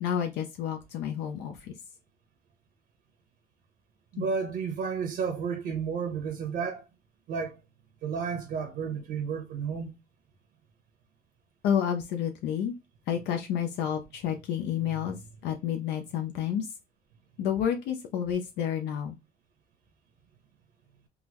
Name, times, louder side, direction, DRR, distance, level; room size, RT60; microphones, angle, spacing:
voice 1, 0.0-1.7 4.2-4.3 11.6-12.7 13.1-15.2 15.4-16.7 17.4-19.2, left 9 dB, 80° left, 0.5 m, -30 dB
voice 2, 4.1-6.9 7.3-7.6 8.0-9.9 14.9-15.2, right 6 dB, 75° right, 1.0 m, -32 dB
3.7 x 2.0 x 2.9 m
cardioid pair, 110°, 17 cm